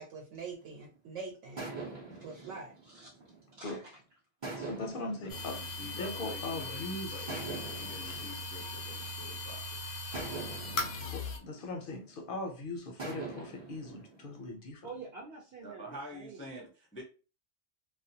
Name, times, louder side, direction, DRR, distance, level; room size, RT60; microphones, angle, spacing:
voice 1, 0.0-1.7 2.2-2.7, right 4 dB, 85° right, 1.0 m, -44 dB
sound 1, 0.6-1.0 1.6-3.8 4.4-6.7 7.3-9.4 10.1-12.4 13.0-14.5, right 3 dB, 30° right, 0.5 m, -44 dB
voice 2, 2.8-4.0 5.2-5.4 14.8-16.6, right 4 dB, 65° right, 0.8 m, -49 dB
voice 3, 4.6-7.3 10.7-14.9, left 2 dB, 60° left, 0.6 m, -40 dB
sound 2, 5.3-11.4, left 2 dB, 80° left, 0.9 m, -39 dB
voice 4, 5.5-9.8 15.6-17.0, left 1 dB, 20° left, 0.3 m, -48 dB
2.3 x 2.1 x 2.6 m
omnidirectional pair, 1.2 m